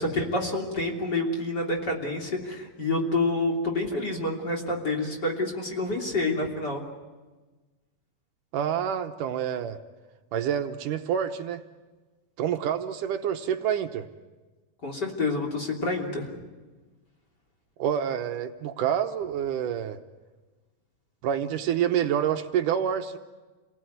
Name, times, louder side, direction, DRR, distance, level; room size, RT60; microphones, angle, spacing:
voice 1, 0.0-6.8 14.8-16.3, left 2 dB, 30° left, 0 dB, 3.5 m, -28 dB
voice 2, 8.5-9.8 10.3-11.6 12.4-14.1 17.8-20.0 21.2-23.2, right 9 dB, 75° right, 7 dB, 2.4 m, -27 dB
29.0 x 19.0 x 9.3 m, 1.3 s
omnidirectional pair, 3.9 m